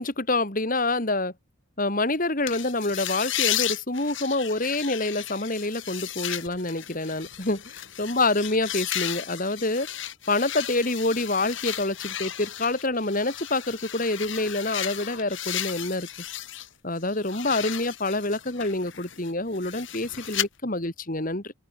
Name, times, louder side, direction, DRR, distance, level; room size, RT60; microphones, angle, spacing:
voice 1, 0.0-1.3 1.8-7.6 8.0-9.9 10.3-16.1 16.8-21.5, left 2 dB, 40° left, 2.7 m, -27 dB
sound 1, 2.5-16.7 17.0-20.5, left 12 dB, 60° left, 2.4 m, -34 dB
open air
head